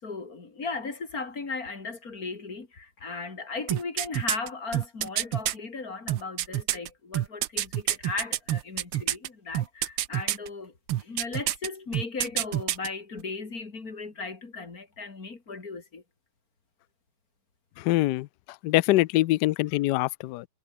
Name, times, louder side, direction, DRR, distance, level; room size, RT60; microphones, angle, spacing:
voice 1, 0.0-16.0, left 4 dB, 40° left, 3.6 m, -37 dB
sound 1, 3.7-5.5 6.1-9.3 9.5-10.5 10.9-11.7 11.9-12.9 13.2-13.3, right 13 dB, 85° right, 1.8 m, -27 dB
voice 2, 17.8-18.3 18.6-20.4, left 17 dB, 85° left, 0.9 m, -24 dB
omnidirectional pair, 2.3 m